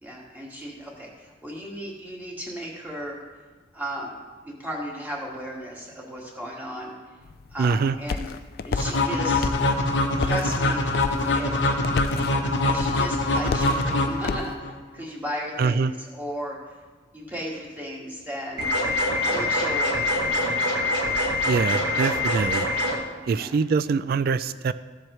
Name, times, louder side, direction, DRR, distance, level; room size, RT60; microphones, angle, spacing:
voice 1, 0.0-3.2 3.7-4.2 4.4-6.9 7.5-8.3 8.6-9.5 10.2-10.9 11.2-11.8 12.6-16.6 17.1-18.7 19.2-20.5 23.3-23.6, equal, 10° right, -3 dB, 1.9 m, -35 dB
sound 1, 7.2-14.6, left 4 dB, 55° left, 0.4 m, -33 dB
voice 2, 7.6-8.0 15.6-15.9 21.5-22.7 23.3-24.7, right 5 dB, 55° right, 15 dB, 0.3 m, -24 dB
sound 2, 8.8-14.7, left 2 dB, 75° left, 1.0 m, -24 dB
sound 3, 18.6-23.0, left 1 dB, 70° right, 1.7 m, -24 dB
15.0 x 7.4 x 3.2 m, 1.3 s
head